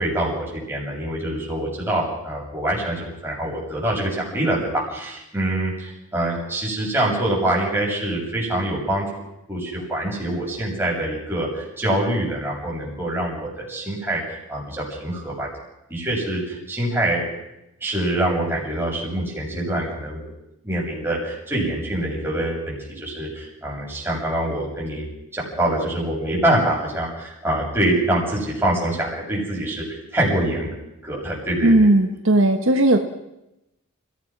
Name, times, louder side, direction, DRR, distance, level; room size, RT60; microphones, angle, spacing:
voice 1, 0.0-9.1 9.5-15.5 15.9-17.2 17.8-20.3 20.6-25.1 25.3-30.7 31.0-31.9, right 1 dB, 10° right, -4 dB, 7.5 m, -25 dB
voice 2, 31.6-33.0, right 1 dB, 65° right, 5 dB, 1.4 m, -16 dB
30.0 x 16.5 x 6.1 m, 0.90 s
head